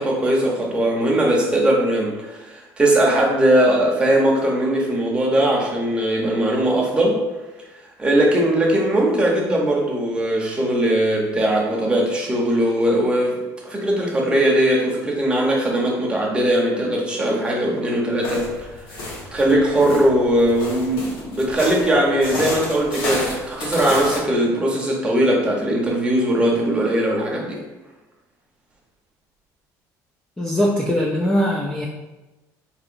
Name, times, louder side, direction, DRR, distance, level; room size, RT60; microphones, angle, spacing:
voice 1, 0.0-7.2 8.0-18.7 19.3-27.6, right 1 dB, 15° right, -3 dB, 0.7 m, -20 dB
sound 1, 18.2-24.2, left 1 dB, 85° left, 1.2 m, -31 dB
voice 2, 30.4-31.9, equal, 10° left, -3 dB, 0.3 m, -21 dB
4.0 x 2.9 x 2.5 m, 1.1 s
cardioid pair, 140°, 7 cm